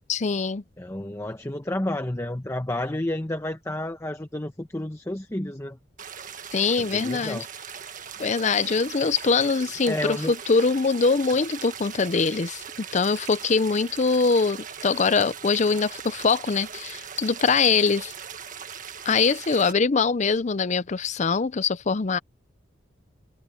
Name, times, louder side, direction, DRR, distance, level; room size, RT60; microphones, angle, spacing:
voice 1, 0.1-0.6 6.5-7.4 8.2-12.6 12.9-18.1 19.0-22.2, left 4 dB, 40° left, 0.5 m, -23 dB
voice 2, 0.8-5.8 6.8-7.4 9.9-10.3, left 1 dB, 15° left, 1.0 m, -30 dB
sound 1, 6.0-19.7, right 7 dB, 45° right, 1.7 m, -40 dB
head